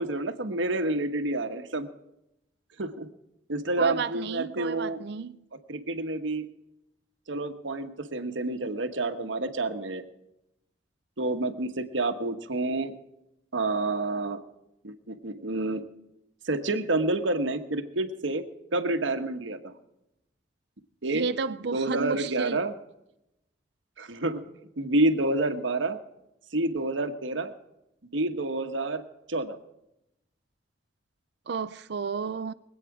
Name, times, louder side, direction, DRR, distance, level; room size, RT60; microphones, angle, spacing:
voice 1, 0.0-1.9 2.8-3.1 3.5-5.0 5.7-6.5 7.3-10.0 11.2-12.9 13.5-14.4 14.8-15.8 16.4-18.4 18.7-19.7 21.0-21.3 21.6-22.7 24.0-24.4 24.8-26.0 26.5-27.5 28.1-29.0 29.3-29.6, right 2 dB, 80° right, 1.2 m, -28 dB
voice 2, 3.8-5.4 21.1-22.6 31.5-32.5, right 5 dB, 60° right, 0.4 m, -32 dB
24.0 x 8.5 x 4.8 m
head